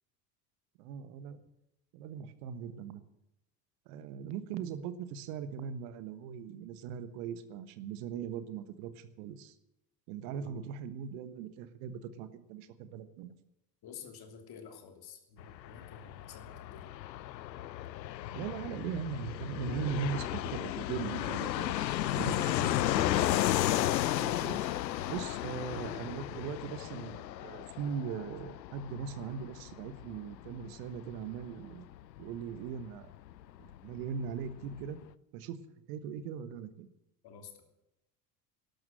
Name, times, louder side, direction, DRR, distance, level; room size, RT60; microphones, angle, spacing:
voice 1, 0.8-1.4 1.9-3.0 3.9-9.5 10.1-13.4 18.3-23.3 24.1-24.7 25.1-31.8 32.2-33.1 33.8-35.0 35.3-35.6 35.9-36.9, right 7 dB, 60° right, 12 dB, 1.4 m, -40 dB
voice 2, 13.8-16.9 37.2-37.5, left 6 dB, 45° left, 5 dB, 3.1 m, -50 dB
Fixed-wing aircraft airplane, 15.4-33.8 34.0-34.1 34.3-35.0, left 13 dB, 80° left, 0.6 m, -34 dB
12.5 x 12.0 x 7.6 m, 0.89 s
figure-of-eight pair, 65°, 50 cm